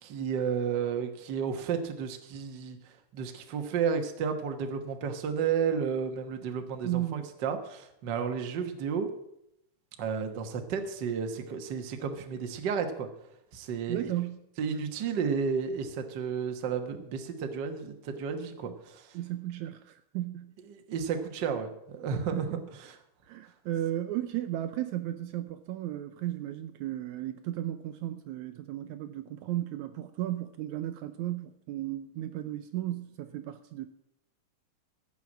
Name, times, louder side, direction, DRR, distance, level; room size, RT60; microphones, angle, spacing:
voice 1, 0.0-2.8 3.1-9.1 10.0-13.1 13.5-14.2 14.6-19.1 20.7-22.5 22.8-22.9, right 6 dB, 55° right, 1.2 m, -32 dB
voice 2, 6.8-7.3 13.9-14.5 18.7-18.8 19.1-20.6 22.3-22.9 23.3-33.9, right 13 dB, 75° right, 1.8 m, -35 dB
15.5 x 5.8 x 7.5 m
omnidirectional pair, 3.7 m